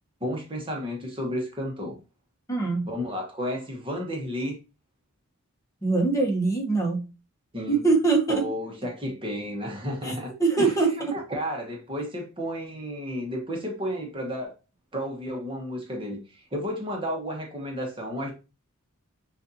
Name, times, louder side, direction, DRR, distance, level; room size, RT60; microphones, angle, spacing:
voice 1, 0.2-2.0 2.9-4.5 7.5-7.8 8.3-10.3 10.6-10.7 11.1-14.6 14.9-18.3, equal, 25° right, 1.1 m, -32 dB
voice 2, 2.5-2.9 5.8-7.0 7.7-8.5 10.0-10.1 10.4-11.2, right 4 dB, 15° left, 1.1 m, -23 dB
6.4 x 2.6 x 2.7 m
head